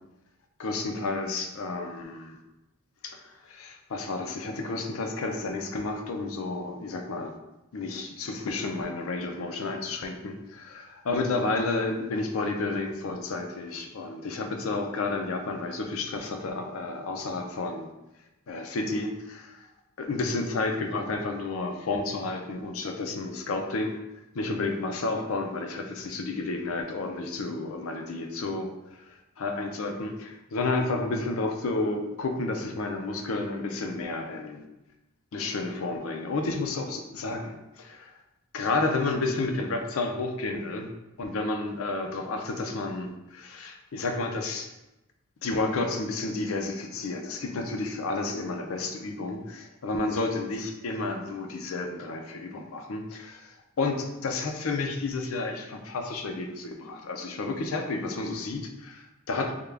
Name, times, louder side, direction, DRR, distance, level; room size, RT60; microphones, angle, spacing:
voice 1, 0.6-2.4 3.0-7.3 7.7-17.9 18.5-19.7 20.0-24.0 24.3-28.7 29.0-29.1 29.4-34.6 35.3-38.1 38.5-40.9 41.2-44.7 45.4-59.5, left 3 dB, 75° left, 4 dB, 0.4 m, -31 dB
3.6 x 2.2 x 3.3 m, 0.95 s
head